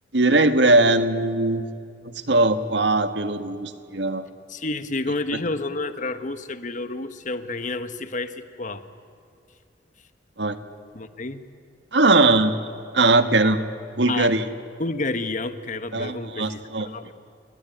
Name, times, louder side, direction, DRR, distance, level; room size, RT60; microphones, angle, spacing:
voice 1, 0.1-1.7 2.0-4.3 10.4-10.6 11.9-12.6 12.9-13.6 14.0-14.4 15.9-16.9, right 2 dB, 75° right, 9 dB, 1.6 m, -20 dB
voice 2, 4.5-8.8 10.9-11.4 14.1-14.4 14.8-17.1, left 2 dB, 45° left, 11 dB, 1.3 m, -30 dB
28.5 x 21.5 x 9.3 m, 2.4 s
head